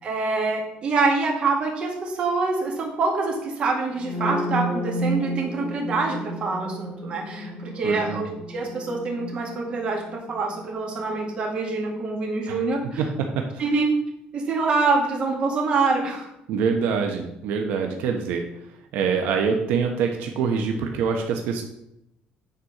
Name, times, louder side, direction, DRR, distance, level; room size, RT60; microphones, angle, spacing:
voice 1, 0.0-13.0 13.6-13.9 14.3-16.3, right 3 dB, 40° right, 0 dB, 2.1 m, -25 dB
sound 1, 3.9-11.8, right 1 dB, 25° left, 1.6 m, -32 dB
voice 2, 7.8-8.3 12.5-12.6 13.0-13.6 16.5-18.4 18.9-21.6, right 6 dB, 85° right, 3 dB, 1.0 m, -25 dB
9.2 x 4.2 x 6.5 m, 0.82 s
cardioid pair, 155°, 3 cm